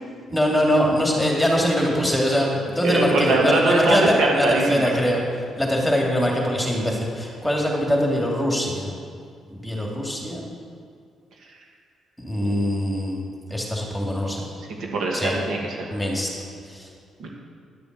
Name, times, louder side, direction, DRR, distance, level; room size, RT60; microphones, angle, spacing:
voice 1, 0.3-5.2 5.6-8.9 9.5-10.4 12.2-14.4 15.1-15.3 15.9-16.3 16.7-16.9, equal, 5° left, -2 dB, 2.7 m, -23 dB
voice 2, 2.8-4.9 12.4-12.6 14.8-16.0 17.2-17.3, right 2 dB, 70° right, -1 dB, 2.1 m, -22 dB
11.0 x 6.9 x 7.6 m, 2.2 s
cardioid pair, 90°, 0 cm